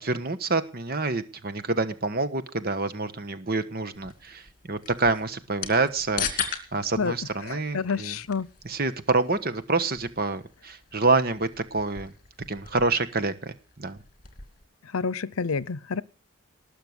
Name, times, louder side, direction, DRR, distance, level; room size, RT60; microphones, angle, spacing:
voice 1, 0.0-8.2 8.6-12.1 12.5-14.0, right 3 dB, 45° right, 1.3 m, -27 dB
sound 1, 3.9-14.6, left 7 dB, 40° left, 2.3 m, -39 dB
voice 2, 7.5-8.5 14.9-16.0, left 5 dB, 80° left, 0.7 m, -28 dB
19.5 x 6.8 x 8.0 m
head